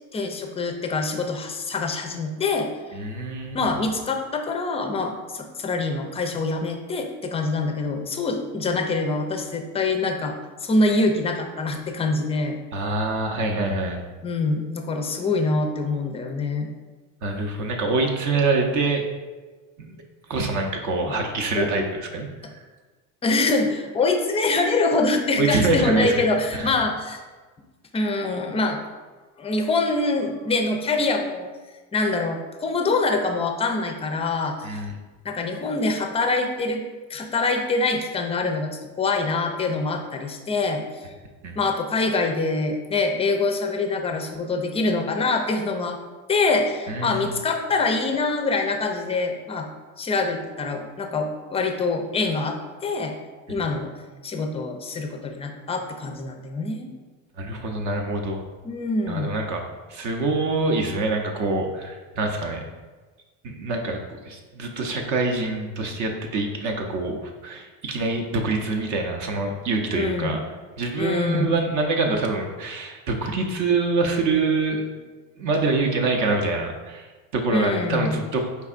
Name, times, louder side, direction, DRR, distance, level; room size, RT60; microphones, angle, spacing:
voice 1, 0.1-2.7 3.5-10.4 10.6-12.6 14.2-16.7 21.1-21.2 21.5-21.7 23.2-27.2 27.9-28.8 29.4-31.5 31.9-34.8 35.2-36.8 37.1-40.8 41.6-46.0 46.3-49.7 50.0-53.1 53.5-53.9 54.2-56.9 58.6-59.4 69.9-70.4 71.0-71.5 77.5-78.2, left 3 dB, 15° left, 5 dB, 0.4 m, -25 dB
voice 2, 2.9-3.6 12.7-14.0 17.2-19.1 19.8-20.0 20.3-22.3 25.4-26.3 26.5-26.7 34.6-34.9 41.4-41.5 46.9-47.4 57.4-58.4 59.1-62.6 63.4-70.4 70.8-75.1 75.4-77.1 77.3-78.4, right 3 dB, 50° right, 3 dB, 0.6 m, -25 dB
4.5 x 3.3 x 2.4 m, 1.3 s
supercardioid pair, 100°, 40 cm